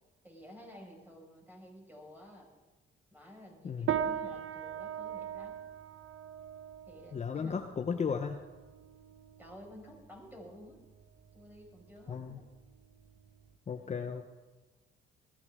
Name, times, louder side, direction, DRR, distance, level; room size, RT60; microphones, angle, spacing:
voice 1, 0.2-2.5 3.1-5.6 6.9-7.6 9.4-10.8 11.3-12.5, equal, 10° right, 0 dB, 5.3 m, -52 dB
sound 1, 3.9-13.5, right 9 dB, 75° right, 1.0 m, -40 dB
voice 2, 7.1-8.4 12.1-12.4 13.7-14.3, left 6 dB, 35° left, 6 dB, 0.8 m, -35 dB
20.0 x 14.0 x 3.6 m, 1.2 s
cardioid pair, 90°, 20 cm